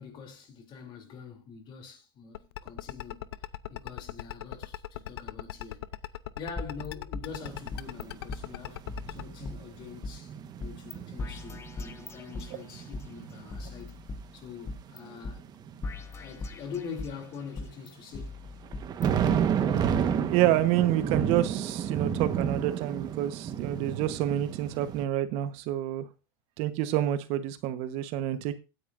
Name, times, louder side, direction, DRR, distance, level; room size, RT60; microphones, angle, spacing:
voice 1, 0.0-5.8 6.3-13.9 14.3-15.4 16.2-18.3, left 6 dB, 40° left, 3.0 m, -44 dB
sound 1, 2.3-9.2, left 13 dB, 85° left, 0.6 m, -38 dB
sound 2, 6.6-8.0 8.3-8.4 8.9-10.1 10.6-10.9 11.2-13.0 13.5-15.0 15.2-15.3 15.8-17.2 17.6-19.4 19.9-20.0, left 3 dB, 20° left, 1.0 m, -40 dB
sound 3, 7.3-7.7 8.0-14.0 14.6-16.0 18.6-25.0, right 8 dB, 35° right, 1.2 m, -31 dB
voice 2, 20.3-26.1 26.6-28.6, right 13 dB, 55° right, 1.1 m, -28 dB
16.0 x 9.6 x 2.6 m
supercardioid pair, 120°, 13 cm